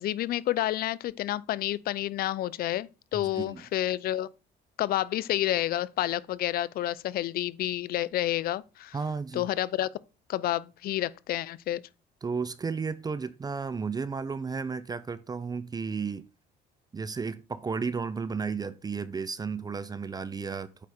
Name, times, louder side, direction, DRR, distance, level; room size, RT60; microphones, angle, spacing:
voice 1, 0.0-4.3 4.8-9.0 9.3-9.9 10.3-11.8, left 13 dB, 65° left, 0.5 m, -29 dB
voice 2, 3.1-3.6 8.9-9.5 12.2-16.3 16.9-20.9, right 5 dB, 25° right, 0.5 m, -33 dB
8.3 x 4.9 x 4.3 m
cardioid pair, 110°, 17 cm